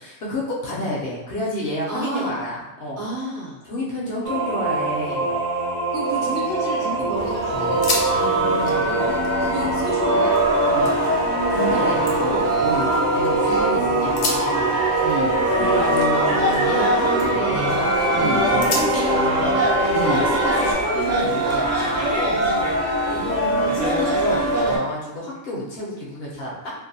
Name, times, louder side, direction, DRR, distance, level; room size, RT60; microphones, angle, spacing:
voice 1, 0.0-3.0 3.6-5.4 8.1-8.9 10.6-12.6 13.1-14.8 15.5-17.7 18.5-19.7 20.1-22.1 23.2-26.7, left 1 dB, 60° left, -5 dB, 0.6 m, -29 dB
voice 2, 1.9-2.3 3.0-3.6 5.9-8.2 8.8-9.1 9.4-10.3 11.5-12.3 12.6-12.9 15.0-15.4 18.1-18.4 19.9-20.2 22.0-22.4 23.1-23.4, right 2 dB, 55° right, -9 dB, 0.9 m, -30 dB
sound 1, 4.2-20.7, right 2 dB, 80° right, 0.4 m, -23 dB
sound 2, 6.0-6.8 7.2-7.3 7.6-8.1 8.4-10.4 10.8-11.4 11.8-13.3 14.0-16.9 17.2-17.6 18.0-18.1 18.6-20.9 21.5-22.7, left 3 dB, 90° left, 1.1 m, -33 dB
sound 3, 7.2-24.8, right 1 dB, 20° right, 0.4 m, -23 dB
2.6 x 2.1 x 2.6 m, 0.97 s
omnidirectional pair, 1.5 m